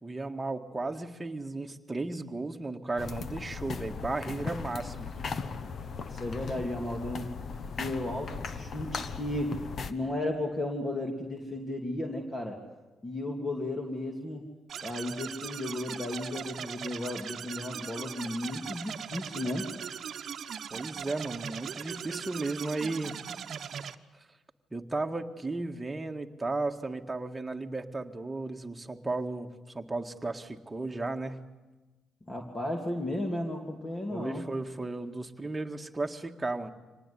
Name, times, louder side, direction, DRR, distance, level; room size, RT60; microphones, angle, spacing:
voice 1, 0.0-5.1 20.7-23.2 24.7-31.4 34.1-36.7, right 2 dB, 15° right, 3 dB, 1.8 m, -35 dB
sound 1, 3.0-9.9, left 5 dB, 50° left, 1.2 m, -38 dB
voice 2, 6.1-7.3 7.7-9.6 9.9-12.6 13.0-14.4 14.8-19.7 32.3-34.5, left 1 dB, 25° left, 1 dB, 2.8 m, -34 dB
sound 2, 14.7-24.0, right 8 dB, 60° right, 1.0 m, -40 dB
25.0 x 19.0 x 10.0 m, 1.2 s
cardioid pair, 90°, 0 cm